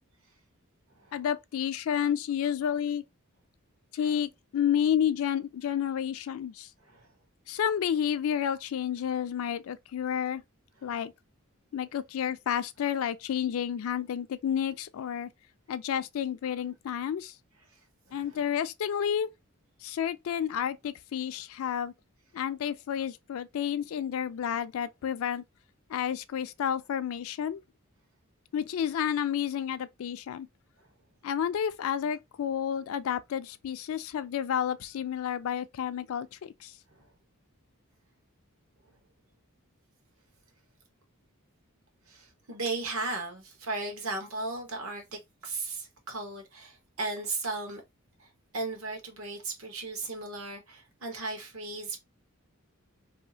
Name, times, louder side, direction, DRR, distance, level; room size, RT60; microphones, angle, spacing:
voice 1, 1.1-3.0 3.9-6.7 7.5-10.4 10.8-11.1 11.7-15.3 15.7-17.3 18.1-19.3 19.8-21.9 22.3-25.4 25.9-27.6 28.5-30.5 31.2-36.7, left 9 dB, 70° left, 0.3 m, -30 dB
voice 2, 18.1-18.4 36.9-37.1 42.1-47.8 48.2-52.0, right 3 dB, 70° right, 1.0 m, -36 dB
2.7 x 2.3 x 2.7 m
head